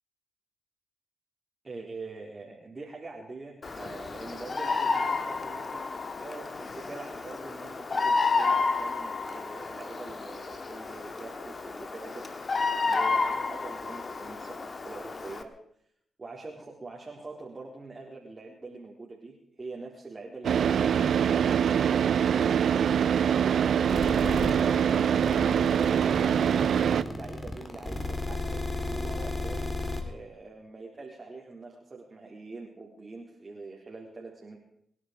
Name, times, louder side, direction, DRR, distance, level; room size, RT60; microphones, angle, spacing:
voice 1, 1.6-5.8 6.2-12.2 12.8-15.5 16.2-23.8 24.5-29.8 30.0-34.6, right 3 dB, 35° right, -2 dB, 4.0 m, -44 dB
Bird vocalization bird call bird song, 3.6-15.4, left 4 dB, 45° left, 2.0 m, -31 dB
Car / Idling, 20.4-27.0, right 8 dB, 65° right, 0.7 m, -24 dB
sound 1, 23.9-30.0, left 2 dB, 30° left, 4.1 m, -33 dB
24.5 x 11.0 x 5.2 m, 0.68 s
hypercardioid pair, 40°, 0 cm